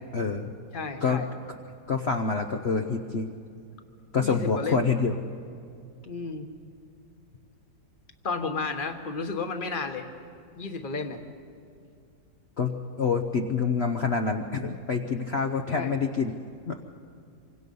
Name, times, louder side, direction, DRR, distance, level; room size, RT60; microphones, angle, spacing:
voice 1, 0.1-0.5 1.0-1.2 1.5-1.6 1.9-3.3 4.1-5.1 12.6-16.3 16.7-16.8, left 5 dB, 50° left, 4 dB, 0.8 m, -27 dB
voice 2, 0.7-1.3 4.2-4.8 6.1-6.5 8.2-10.0 10.6-11.2 15.7-15.9, left 4 dB, 30° left, 6 dB, 1.3 m, -32 dB
26.5 x 24.5 x 5.4 m, 2.4 s
omnidirectional pair, 2.0 m